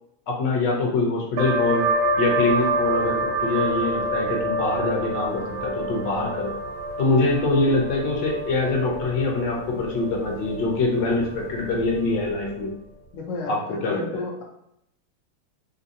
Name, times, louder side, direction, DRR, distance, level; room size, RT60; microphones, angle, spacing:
voice 1, 0.3-1.8 2.2-6.5 7.0-12.7 13.5-14.2, left 3 dB, 70° left, -1 dB, 1.2 m, -24 dB
sound 1, 1.4-12.7, right 2 dB, 75° right, 1.0 m, -28 dB
voice 2, 13.1-14.4, left 3 dB, 85° left, -1 dB, 0.7 m, -32 dB
3.3 x 2.7 x 2.7 m, 0.79 s
omnidirectional pair, 2.2 m